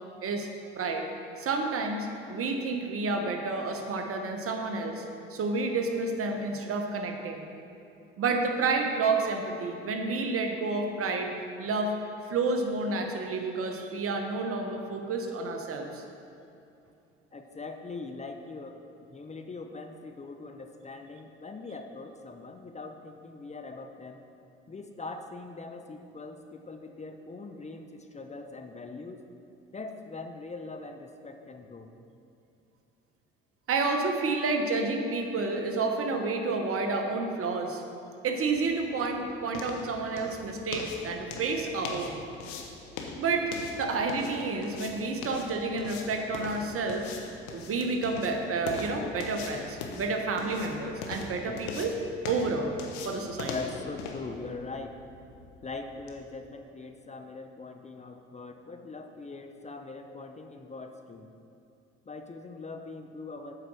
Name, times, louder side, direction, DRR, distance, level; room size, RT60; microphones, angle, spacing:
voice 1, 0.8-1.1 1.4-5.0 5.3-7.4 8.2-11.3 11.6-12.0 12.3-16.0 33.7-37.8 38.2-42.2 43.2-47.1 47.5-51.9 52.2-52.8 53.0-53.5, right 3 dB, 50° right, 4 dB, 1.1 m, -30 dB
voice 2, 17.3-24.2 24.7-29.2 29.7-32.0 51.4-51.6 53.5-54.9 55.6-61.3 62.1-63.5, left 3 dB, 25° left, 5 dB, 0.6 m, -42 dB
sound 1, 38.4-56.2, left 4 dB, 75° left, 0.9 m, -41 dB
7.9 x 4.9 x 6.2 m, 2.6 s
hypercardioid pair, 60°, 29 cm